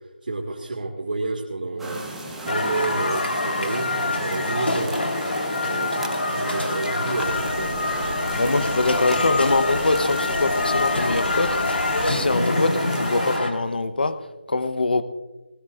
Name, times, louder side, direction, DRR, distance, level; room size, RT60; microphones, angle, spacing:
voice 1, 0.2-2.0 2.5-5.1 5.6-8.5 9.1-9.5, right 3 dB, 55° right, 2.3 m, -30 dB
sound 1, 1.8-13.4, right 1 dB, ahead, 0.8 m, -35 dB
sound 2, 2.5-13.5, left 2 dB, 75° left, 3.8 m, -25 dB
sound 3, 7.2-12.3, right 1 dB, 85° right, 2.4 m, -36 dB
voice 2, 8.4-11.6 12.0-15.0, left 2 dB, 55° left, 1.1 m, -23 dB
20.0 x 19.5 x 2.6 m
figure-of-eight pair, 175°, 6 cm